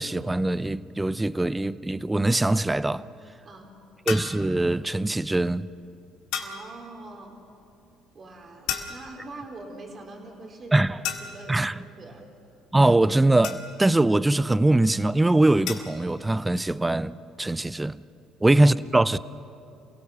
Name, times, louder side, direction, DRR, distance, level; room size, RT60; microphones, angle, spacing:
voice 1, 0.0-3.1 4.1-5.7 10.7-11.0 11.5-11.8 12.7-18.0 18.4-19.2, right 2 dB, 15° right, 0.6 m, -22 dB
voice 2, 3.4-3.8 6.4-7.4 8.1-10.9 11.2-12.3 18.4-18.6, right 2 dB, 40° right, 4.1 m, -43 dB
sound 1, 4.1-4.4 6.3-6.7 8.7-9.3 11.0-11.6 13.4-14.0 15.7-16.0, left 8 dB, 75° left, 2.0 m, -33 dB
27.5 x 17.0 x 7.1 m
supercardioid pair, 75°, 0 cm